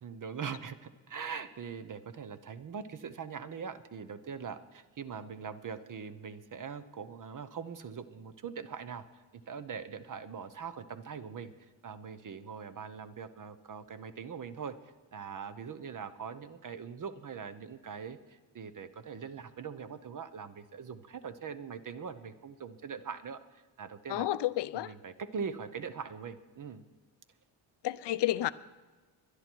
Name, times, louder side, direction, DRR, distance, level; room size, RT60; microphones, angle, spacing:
voice 1, 0.0-9.0 9.3-11.5 11.8-14.8 15.1-24.3 24.7-26.8, right 6 dB, 40° right, 0.8 m, -42 dB
voice 2, 24.1-24.9 27.8-28.5, left 14 dB, 60° left, 0.6 m, -30 dB
21.5 x 11.5 x 4.5 m
cardioid pair, 130°, 48 cm